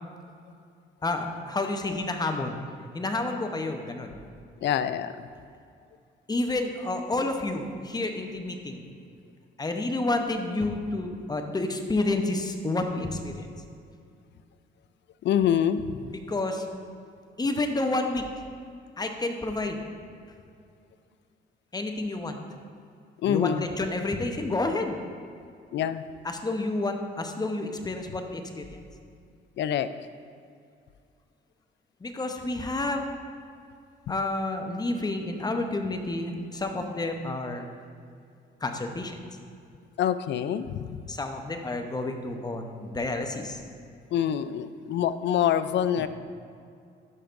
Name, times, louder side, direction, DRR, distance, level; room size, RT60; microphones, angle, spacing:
voice 1, 1.0-2.6 2.9-4.1 6.3-8.8 9.6-13.5 16.0-16.7 17.4-18.3 19.0-19.8 21.7-22.4 23.2-25.0 26.2-28.8 32.0-33.1 34.1-37.7 38.6-39.2 41.1-43.6 46.0-46.1, left 2 dB, 20° left, 5 dB, 0.7 m, -30 dB
voice 2, 4.6-5.1 15.2-16.0 23.2-23.7 25.7-26.0 29.6-29.9 40.0-41.0 44.1-46.1, left 9 dB, 65° left, 13 dB, 0.4 m, -25 dB
12.0 x 5.9 x 2.5 m, 2.4 s
cardioid pair, 90°, 20 cm